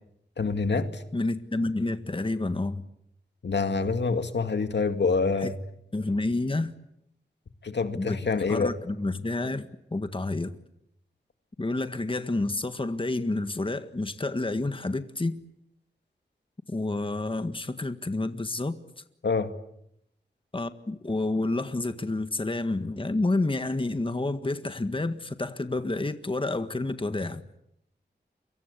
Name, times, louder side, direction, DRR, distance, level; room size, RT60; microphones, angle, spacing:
voice 1, 0.4-1.0 3.4-5.6 7.6-8.7 19.2-19.5, left 4 dB, 80° left, 2.2 m, -26 dB
voice 2, 1.1-2.8 5.4-5.5 5.9-6.7 7.9-8.2 8.5-10.5 11.6-15.4 16.7-18.8 20.5-27.4, left 2 dB, 30° left, 1.7 m, -29 dB
29.0 x 24.5 x 8.4 m
wide cardioid pair, 75°, 18 cm